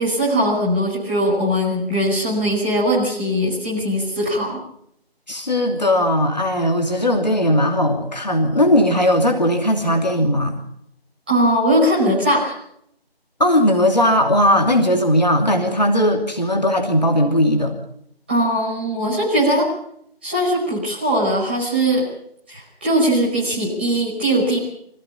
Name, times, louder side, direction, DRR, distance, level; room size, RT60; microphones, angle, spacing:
voice 1, 0.0-4.6 11.3-12.5 18.3-19.7 20.2-22.1 22.5-24.6, equal, 10° right, -8 dB, 5.1 m, -20 dB
voice 2, 5.3-10.5 13.4-17.7, left 1 dB, 45° left, 3 dB, 2.9 m, -18 dB
25.0 x 16.0 x 7.1 m, 0.73 s
figure-of-eight pair, 175°, 31 cm